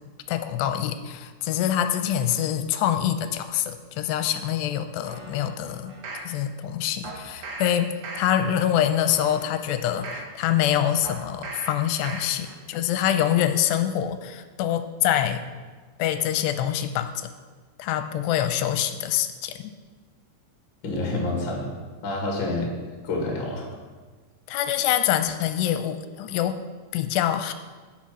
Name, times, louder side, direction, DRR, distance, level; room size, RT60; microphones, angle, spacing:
voice 1, 0.3-5.9 6.2-15.4 16.0-17.3 17.8-19.6 24.5-26.6 26.9-27.5, left 10 dB, 85° left, 9 dB, 2.7 m, -25 dB
sound 1, 5.0-6.3 7.0-7.7 8.0-8.5 9.0-10.3 11.0-11.7 12.0-12.5 12.9-13.0, right 3 dB, 70° right, 1.6 m, -39 dB
voice 2, 20.8-21.7 22.0-22.7 23.0-23.6, left 2 dB, 35° left, -1 dB, 2.2 m, -28 dB
10.0 x 8.6 x 6.1 m, 1.4 s
omnidirectional pair, 5.0 m